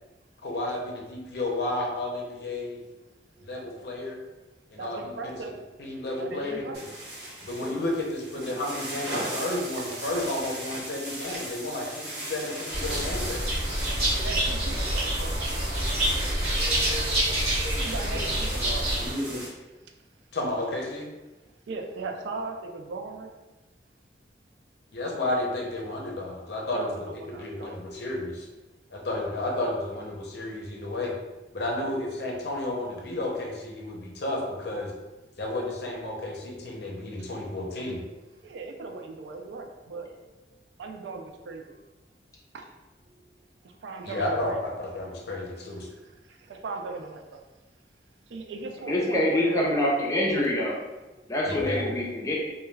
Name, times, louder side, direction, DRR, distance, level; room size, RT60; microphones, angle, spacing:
voice 1, 0.4-2.8 3.4-4.2 4.7-5.1 5.8-6.6 7.4-13.6 20.3-21.1 24.9-28.5 28.9-31.1 31.5-34.9 35.4-38.0 44.0-45.9 51.5-51.9, left 1 dB, 65° left, -1 dB, 0.6 m, -32 dB
voice 2, 4.8-5.5 5.9-6.9 9.2-10.3 14.1-16.0 17.8-18.9 21.7-23.3 26.7-27.8 31.8-31.9 37.2-37.3 38.4-40.1 40.8-41.7 42.5-42.6 43.6-44.6 46.0-47.4 48.3-49.6 51.2-51.3 51.7-52.0, right 3 dB, 80° right, 4 dB, 0.3 m, -38 dB
sound 1, 6.7-19.5, right 1 dB, 65° right, 0.9 m, -37 dB
sound 2, 12.7-19.1, right 1 dB, 35° right, 1.2 m, -27 dB
voice 3, 48.9-50.8 51.3-52.3, left 1 dB, 20° left, -4 dB, 0.5 m, -25 dB
2.2 x 2.2 x 3.1 m, 1.1 s
head